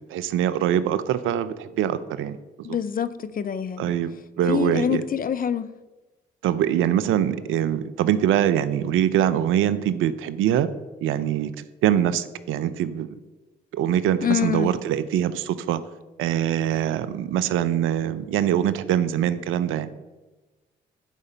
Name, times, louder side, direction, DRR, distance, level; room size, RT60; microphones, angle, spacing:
voice 1, 0.1-2.7 3.8-5.0 6.4-10.7 11.0-13.2 13.7-15.8 16.2-19.9, right 10 dB, 75° right, 0.6 m, -23 dB
voice 2, 2.6-3.9 4.5-5.7 14.2-14.7, left 8 dB, 45° left, 0.6 m, -26 dB
11.0 x 5.0 x 5.5 m
hypercardioid pair, 45°, 21 cm